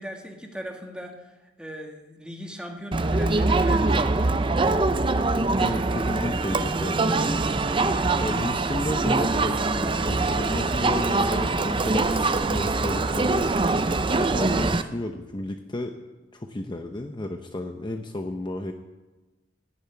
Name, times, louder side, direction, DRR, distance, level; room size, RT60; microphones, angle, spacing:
voice 1, 0.0-4.3, equal, 5° right, 2 dB, 1.7 m, -39 dB
Crowd, 2.9-14.8, right 3 dB, 30° right, 0.6 m, -23 dB
voice 2, 5.6-7.3 8.2-13.5 14.2-16.0 16.3-18.7, left 1 dB, 25° left, 5 dB, 0.7 m, -32 dB
15.5 x 7.2 x 9.4 m, 1.2 s
head